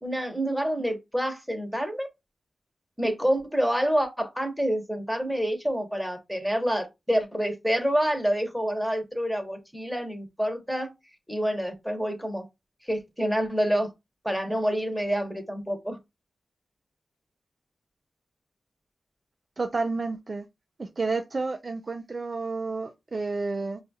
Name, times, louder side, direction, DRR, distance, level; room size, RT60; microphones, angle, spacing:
voice 1, 0.0-2.1 3.0-10.9 11.3-12.4 12.8-13.9 14.2-16.0, equal, ahead, 1.0 m, -27 dB
voice 2, 19.6-20.5 20.8-23.8, right 3 dB, 45° right, 0.4 m, -30 dB
5.3 x 2.3 x 2.7 m
cardioid pair, 75°, 0 cm